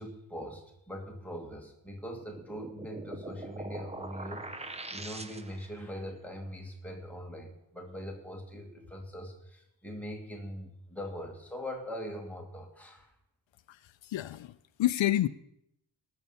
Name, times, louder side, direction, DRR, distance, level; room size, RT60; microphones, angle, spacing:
voice 1, 0.0-13.1, equal, 5° left, 0 dB, 1.9 m, -42 dB
sound 1, 2.2-5.8, right 2 dB, 15° right, 0.5 m, -42 dB
voice 2, 13.7-15.3, left 14 dB, 80° left, 14 dB, 0.5 m, -29 dB
19.0 x 6.6 x 5.6 m, 0.76 s
wide cardioid pair, 175°, 45 cm